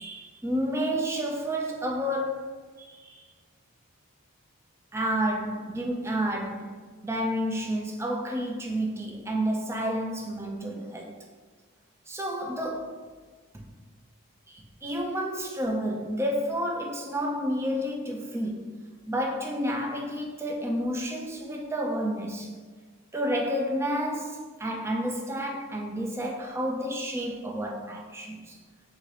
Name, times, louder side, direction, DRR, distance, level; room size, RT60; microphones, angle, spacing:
voice 1, 0.0-2.4 2.9-3.3 4.9-6.7 7.0-11.2 12.1-13.0 13.5-13.6 14.5-18.8 19.1-22.5 23.1-28.6, equal, 10° right, 1 dB, 0.3 m, -30 dB
3.7 x 2.8 x 4.6 m, 1.5 s
head